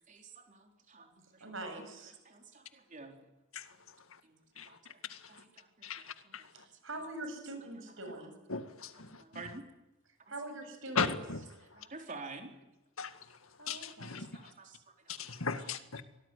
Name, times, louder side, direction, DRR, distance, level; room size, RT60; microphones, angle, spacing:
voice 1, 0.1-1.4 2.3-3.2 4.2-5.0 5.3-6.5 9.0-9.6 11.6-12.5 13.9-15.4, right 3 dB, 40° right, 4.0 m, -50 dB
voice 2, 1.4-2.2 6.5-8.3 10.3-11.1 13.6-14.2, right 2 dB, 70° right, 7.2 m, -43 dB
voice 3, 5.1-5.4 5.8-6.4 8.5-9.4 11.0-11.4 13.0-13.2 13.7-14.3 15.1-16.0, left 5 dB, 90° left, 2.0 m, -37 dB
24.5 x 19.0 x 9.8 m
head